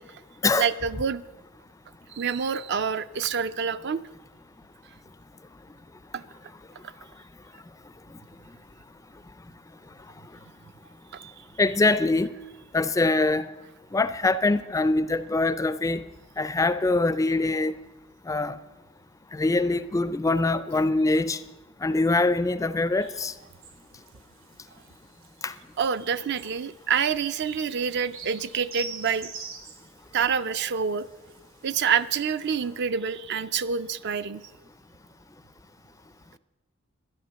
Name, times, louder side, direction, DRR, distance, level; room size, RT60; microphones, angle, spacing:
voice 1, 0.6-1.2 2.1-4.0 6.1-6.2 11.1-11.3 25.8-29.3 30.1-31.1 31.6-34.4, right 6 dB, 55° right, 0.4 m, -27 dB
voice 2, 11.6-12.3 12.7-13.5 13.9-16.0 16.4-17.7 18.3-18.6 19.3-21.4 21.8-23.3 25.4-25.5, left 2 dB, 15° left, 0.3 m, -23 dB
sound 1, 23.0-32.8, right 5 dB, 75° right, 1.7 m, -46 dB
12.5 x 10.5 x 6.8 m
head